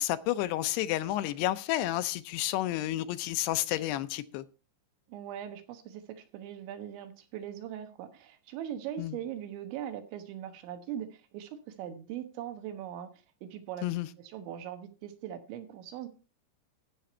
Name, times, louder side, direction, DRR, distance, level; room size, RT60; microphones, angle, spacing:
voice 1, 0.0-4.5 9.0-9.2 13.8-14.1, left 15 dB, 80° left, 2.5 m, -30 dB
voice 2, 5.1-13.1 13.4-16.1, right 10 dB, 90° right, 3.6 m, -40 dB
15.5 x 6.9 x 4.3 m
omnidirectional pair, 5.1 m